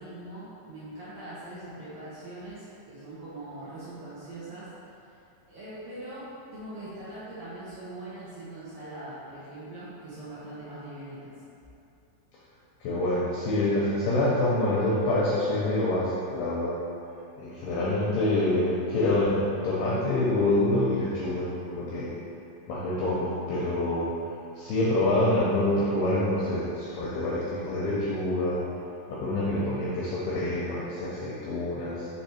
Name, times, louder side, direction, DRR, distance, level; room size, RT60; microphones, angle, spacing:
voice 1, 0.0-4.7 5.5-11.3, right 1 dB, 70° right, -12 dB, 2.2 m, -41 dB
voice 2, 12.8-16.8 17.4-22.1 22.7-24.1 24.6-28.6 29.1-32.1, left 1 dB, 85° left, -8 dB, 2.2 m, -26 dB
7.1 x 3.1 x 4.2 m, 2.7 s
omnidirectional pair, 5.3 m